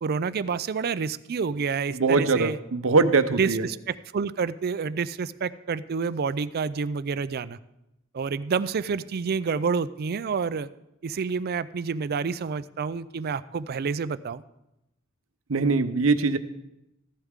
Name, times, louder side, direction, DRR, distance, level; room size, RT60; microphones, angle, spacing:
voice 1, 0.0-2.6 3.4-7.6 8.1-10.7 11.0-14.4, right 5 dB, 50° right, 16 dB, 0.4 m, -28 dB
voice 2, 2.0-3.6 15.5-16.4, right 4 dB, 70° right, 11 dB, 0.7 m, -22 dB
15.0 x 11.5 x 3.6 m, 0.88 s
head